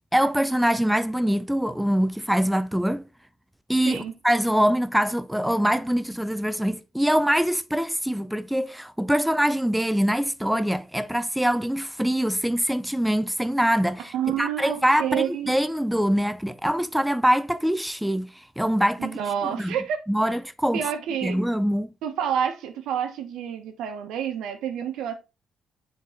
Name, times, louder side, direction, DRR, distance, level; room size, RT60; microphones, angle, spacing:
voice 1, 0.1-3.0 3.7-19.2 19.4-19.7 20.1-20.8 21.2-21.9, equal, 5° right, 0.4 m, -24 dB
voice 2, 14.1-15.5 19.0-20.0 20.7-21.3 22.0-25.1, right 8 dB, 85° right, 1.1 m, -28 dB
7.4 x 3.9 x 3.9 m
cardioid pair, 90°, 0 cm